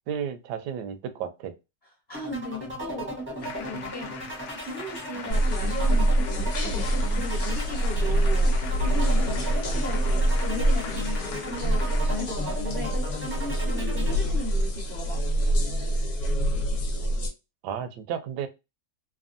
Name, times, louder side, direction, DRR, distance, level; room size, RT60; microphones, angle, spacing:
voice 1, 0.0-1.5 17.6-18.5, right 8 dB, 75° right, 9 dB, 1.1 m, -33 dB
voice 2, 2.1-4.3 4.6-15.3, left 2 dB, 35° left, -3 dB, 0.9 m, -37 dB
sound 1, 2.1-14.2, right 1 dB, 10° right, 0.6 m, -36 dB
sound 2, 3.4-12.2, left 7 dB, 80° left, 1.3 m, -42 dB
sound 3, 5.3-17.3, right 1 dB, 60° left, 1.2 m, -25 dB
3.4 x 2.2 x 2.5 m, 0.25 s
omnidirectional pair, 1.9 m